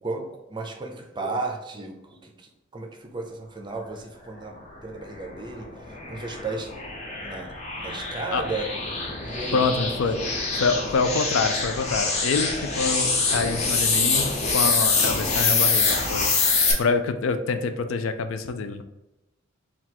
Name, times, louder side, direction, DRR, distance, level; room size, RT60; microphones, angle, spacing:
voice 1, 0.0-6.7 7.2-7.5 7.8-9.6 10.2-10.3 15.1-15.7, right 3 dB, 20° right, 3 dB, 0.5 m, -35 dB
sound 1, 5.2-16.7, left 4 dB, 35° left, 0.6 m, -25 dB
voice 2, 9.5-18.8, left 4 dB, 75° left, 9 dB, 0.4 m, -26 dB
3.8 x 2.3 x 4.4 m, 0.91 s
head